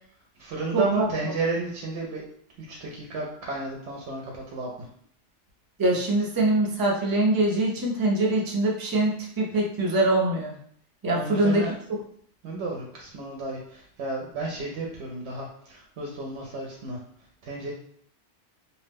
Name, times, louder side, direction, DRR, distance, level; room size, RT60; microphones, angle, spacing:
voice 1, 0.4-2.3 2.6-4.7 11.1-11.7 12.4-17.0 17.4-17.7, right 3 dB, 75° right, -2 dB, 0.8 m, -32 dB
voice 2, 5.8-10.5 11.0-11.6, right 2 dB, 35° right, -2 dB, 0.3 m, -23 dB
2.7 x 2.0 x 3.3 m, 0.63 s
omnidirectional pair, 1.2 m